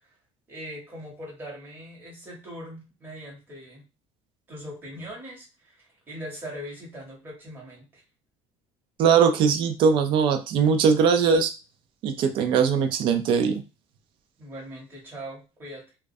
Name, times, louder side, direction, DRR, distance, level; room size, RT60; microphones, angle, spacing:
voice 1, 0.5-3.8 4.5-8.0 14.4-15.8, equal, 20° right, -4 dB, 1.0 m, -41 dB
voice 2, 9.0-11.5 12.0-13.6, right 6 dB, 50° right, 6 dB, 0.4 m, -20 dB
2.3 x 2.1 x 2.6 m, 0.30 s
cardioid pair, 165°, 11 cm